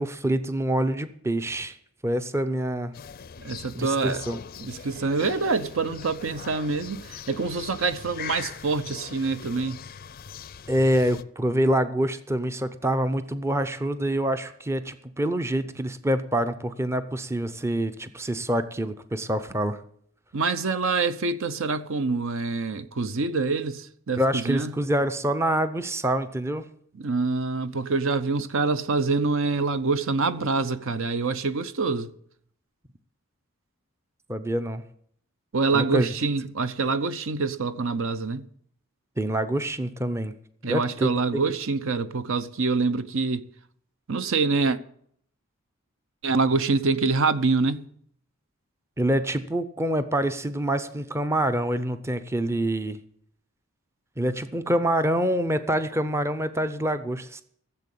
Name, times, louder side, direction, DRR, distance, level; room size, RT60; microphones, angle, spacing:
voice 1, 0.0-1.8 2.0-2.9 3.8-4.4 10.7-19.8 24.2-26.6 34.3-34.8 35.7-36.1 39.2-40.3 40.6-41.1 49.0-53.0 54.2-57.4, right 1 dB, 10° right, 0.6 m, -26 dB
sound 1, 2.9-11.2, left 7 dB, 45° left, 0.5 m, -41 dB
voice 2, 3.4-4.2 4.6-9.8 20.3-24.7 27.0-32.1 35.5-38.4 40.6-43.5 44.1-44.8 46.2-47.9, right 4 dB, 65° right, 0.7 m, -26 dB
14.5 x 7.5 x 8.4 m
head